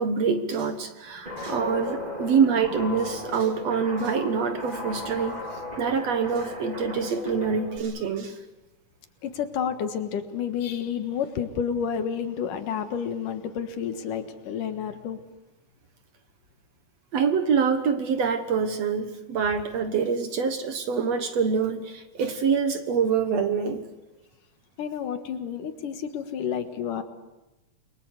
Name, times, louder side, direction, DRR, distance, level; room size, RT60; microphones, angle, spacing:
voice 1, 0.0-5.4 5.8-8.4 17.1-23.8, right 6 dB, 55° right, 8 dB, 2.2 m, -25 dB
Guitar, 1.3-7.8, left 2 dB, 10° right, 4.4 m, -35 dB
voice 2, 9.2-15.2 24.8-27.0, left 8 dB, 70° left, 8 dB, 3.0 m, -30 dB
29.0 x 23.0 x 8.1 m, 1.0 s
omnidirectional pair, 4.0 m